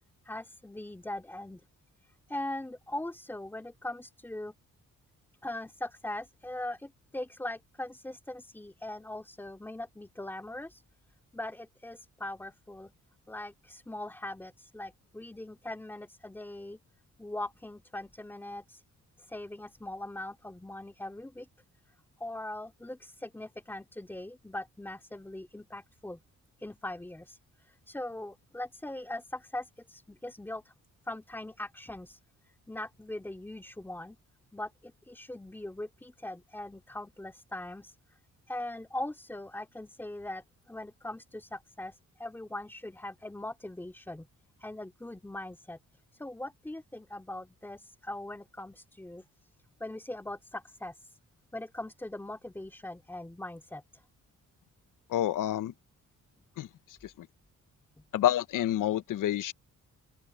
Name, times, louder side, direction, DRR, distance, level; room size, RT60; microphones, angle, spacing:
voice 1, 0.2-1.6 2.3-4.5 5.4-10.8 11.3-12.9 13.3-16.8 17.2-18.8 19.2-21.5 22.2-26.2 26.6-30.7 31.0-32.2 32.7-34.2 34.5-37.9 38.5-44.3 44.6-45.8 46.1-49.2 49.8-51.2 51.5-54.0 58.0-58.1, left 1 dB, 5° left, 2.9 m, -41 dB
voice 2, 55.1-55.7 56.6-56.7 57.0-57.3 58.1-59.5, left 12 dB, 85° left, 1.0 m, -28 dB
open air
wide cardioid pair, 175°, 31 cm